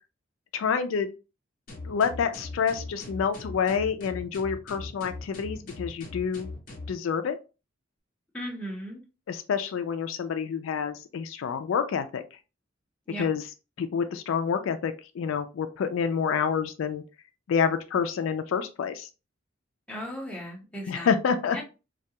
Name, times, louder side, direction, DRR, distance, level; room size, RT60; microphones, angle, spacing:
voice 1, 0.5-1.1 1.8-6.5 6.9-7.4 9.3-12.2 13.2-13.5 13.8-17.0 17.5-19.1 20.9-21.6, left 6 dB, 85° left, 0.3 m, -28 dB
sound 1, 1.7-7.0, left 2 dB, 45° left, 0.7 m, -40 dB
voice 2, 8.3-9.0 13.1-13.2 19.9-21.1 21.5-21.6, equal, 5° left, 0.8 m, -36 dB
2.3 x 2.2 x 2.7 m
head